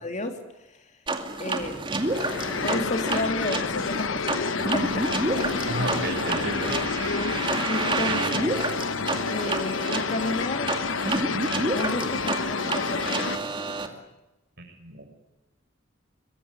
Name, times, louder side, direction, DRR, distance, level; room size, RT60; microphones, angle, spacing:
voice 1, 0.0-0.4 1.4-1.8 2.6-5.1 7.0-7.4 7.7-8.5 9.3-10.8 11.6-14.0, left 1 dB, 40° left, 5 dB, 3.2 m, -32 dB
sound 1, 1.1-13.9, right 2 dB, 25° right, 2.4 m, -29 dB
Organ, 1.6-7.4, equal, 5° right, 4.8 m, -44 dB
sound 2, 1.9-13.4, left 5 dB, 75° left, 0.9 m, -29 dB
voice 2, 5.7-6.8 8.0-8.4 14.6-15.0, right 2 dB, 55° right, 4 dB, 6.5 m, -32 dB
23.0 x 21.5 x 9.7 m, 0.99 s
head